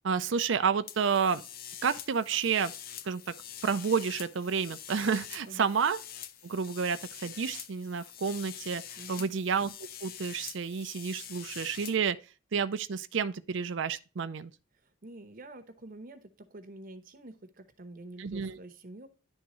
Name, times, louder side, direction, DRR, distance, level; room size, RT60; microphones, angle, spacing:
voice 1, 0.0-1.4 1.8-2.7 3.1-3.3 3.6-6.0 6.4-8.8 9.1-9.7 10.0-12.2 12.5-14.5 18.2-18.6, right 6 dB, 65° right, 0.5 m, -30 dB
sound 1, 0.9-12.0, left 10 dB, 45° left, 0.5 m, -45 dB
voice 2, 9.0-9.3 15.0-19.1, right 2 dB, 45° right, 0.8 m, -47 dB
10.5 x 3.6 x 3.0 m
head